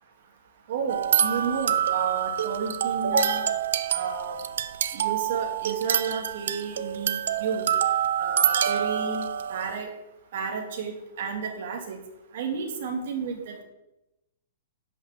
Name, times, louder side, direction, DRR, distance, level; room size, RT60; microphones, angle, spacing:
voice 1, 0.7-3.5 3.9-4.4 4.9-7.7 8.2-9.9 10.3-12.0 12.3-13.6, right 5 dB, 45° right, 2 dB, 2.2 m, -31 dB
sound 1, 0.9-9.8, right 9 dB, 60° right, 0.6 m, -27 dB
10.0 x 5.8 x 7.3 m, 0.91 s
hypercardioid pair, 180°, 0 cm